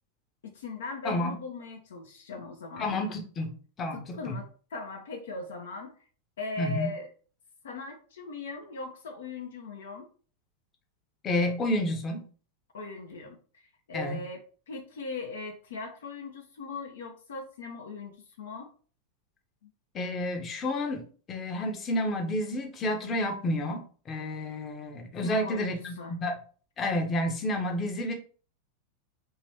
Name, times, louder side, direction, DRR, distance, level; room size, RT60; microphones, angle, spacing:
voice 1, 0.4-2.9 3.9-5.9 6.4-7.1 7.6-10.1 12.7-13.4 13.9-14.4 14.7-18.7 19.6-19.7 25.2-26.1, left 3 dB, 60° left, 3 dB, 0.5 m, -39 dB
voice 2, 1.0-1.3 2.8-4.4 6.6-6.9 11.2-12.2 13.9-14.2 19.9-26.4 26.8-28.1, left 1 dB, 25° left, 3 dB, 0.8 m, -30 dB
2.9 x 2.8 x 3.2 m, 0.40 s
figure-of-eight pair, 90°, 0 cm